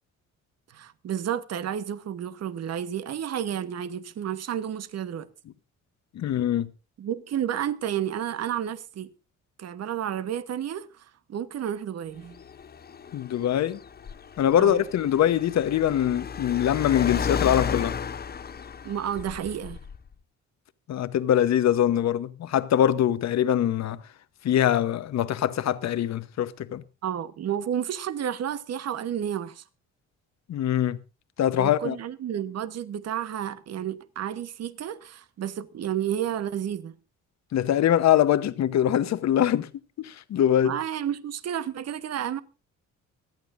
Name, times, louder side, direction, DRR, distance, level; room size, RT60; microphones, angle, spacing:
voice 1, 0.7-5.3 7.0-9.1 9.6-12.4 14.6-14.9 18.8-19.8 27.0-29.6 31.6-36.9 40.6-42.4, right 10 dB, 55° right, 1.0 m, -31 dB
voice 2, 6.1-6.7 13.1-13.8 14.4-18.0 20.9-24.0 24.4-26.8 30.5-31.0 31.4-32.0 37.5-39.7 40.0-40.7, left 10 dB, 60° left, 1.0 m, -23 dB
Car, 12.2-20.1, left 6 dB, 30° left, 0.7 m, -34 dB
25.0 x 9.1 x 2.5 m
cardioid pair, 90°, 30 cm